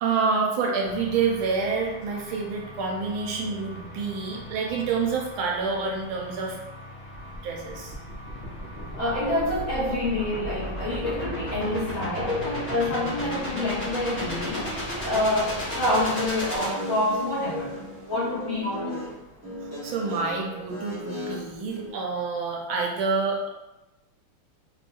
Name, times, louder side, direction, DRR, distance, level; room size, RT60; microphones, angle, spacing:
voice 1, 0.0-6.6 7.4-7.9 19.6-23.5, right 4 dB, 75° right, -1 dB, 1.4 m, -28 dB
sound 1, 0.8-16.4, left 1 dB, 85° left, 1.7 m, -43 dB
sound 2, 7.1-17.5, equal, 40° left, 1.2 m, -34 dB
voice 2, 9.0-19.0, left 1 dB, 65° left, -9 dB, 2.1 m, -27 dB
Guitar, 16.6-21.9, left 1 dB, 20° right, 0.5 m, -36 dB
4.4 x 2.6 x 2.3 m, 1.0 s
omnidirectional pair, 2.4 m